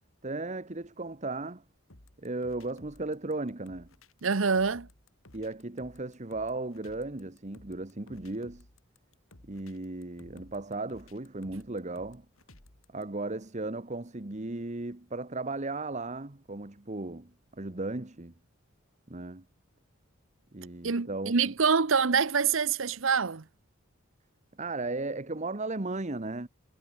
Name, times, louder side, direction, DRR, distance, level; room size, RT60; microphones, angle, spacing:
voice 1, 0.2-1.6 2.2-3.9 5.3-8.7 9.5-12.2 12.9-18.3 19.1-19.4 20.5-21.3 24.6-26.5, right 2 dB, 35° right, 1.2 m, -36 dB
sound 1, 1.9-13.0, left 1 dB, 85° left, 4.3 m, -56 dB
voice 2, 4.2-4.9 20.8-23.4, right 5 dB, 70° right, 0.9 m, -25 dB
head